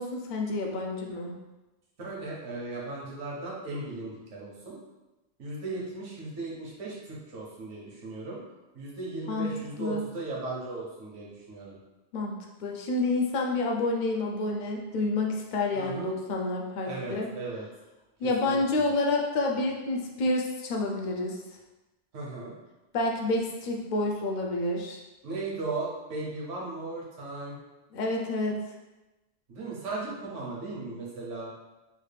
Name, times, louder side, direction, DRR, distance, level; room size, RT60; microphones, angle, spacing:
voice 1, 0.0-1.3 9.3-10.0 12.1-17.3 18.2-21.4 22.9-25.0 27.9-28.6, left 2 dB, 60° left, 1 dB, 0.5 m, -29 dB
voice 2, 2.0-4.8 5.4-8.4 8.7-11.8 15.7-16.1 16.8-17.7 18.4-18.9 22.1-22.5 25.2-27.6 29.5-31.5, right 3 dB, 80° right, -4 dB, 1.2 m, -37 dB
3.2 x 2.4 x 3.3 m, 1.1 s
omnidirectional pair, 1.2 m